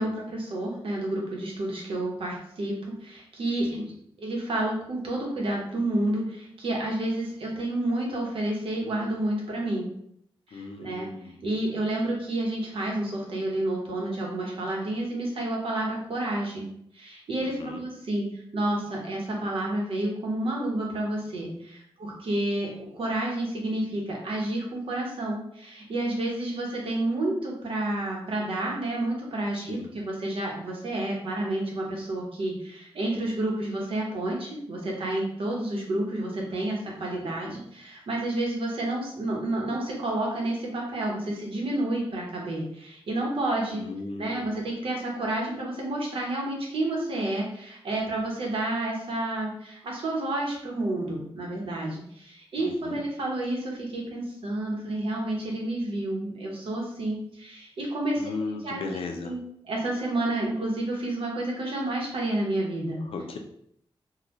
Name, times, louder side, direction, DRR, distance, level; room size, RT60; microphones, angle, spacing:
voice 1, 0.0-2.7 3.0-3.8 4.2-9.9 10.5-11.1 11.4-16.7 16.9-43.8 44.2-58.3 58.6-58.8 59.2-59.4 59.6-63.0, right 1 dB, 80° right, -2 dB, 1.0 m, -30 dB
voice 2, 10.5-11.4 17.4-17.8 29.5-29.9 36.8-37.6 43.7-44.5 52.6-53.0 58.2-59.3 63.1-63.4, left 3 dB, 85° left, 4 dB, 0.5 m, -37 dB
3.8 x 2.3 x 3.0 m, 0.70 s
wide cardioid pair, 160°, 9 cm